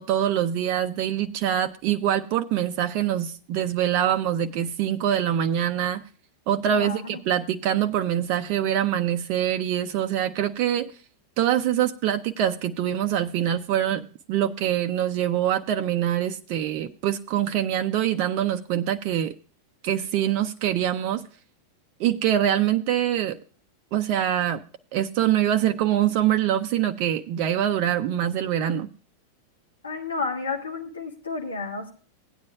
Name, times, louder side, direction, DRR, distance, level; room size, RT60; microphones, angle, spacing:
voice 1, 0.0-6.0 6.5-10.9 11.4-19.3 19.8-21.2 22.0-23.4 23.9-24.6 24.9-28.9, right 11 dB, 45° right, 7 dB, 0.6 m, -24 dB
voice 2, 6.7-7.2 29.8-31.9, left 4 dB, 75° left, 3 dB, 1.6 m, -31 dB
17.0 x 9.6 x 2.4 m, 0.40 s
figure-of-eight pair, 90°, 0 cm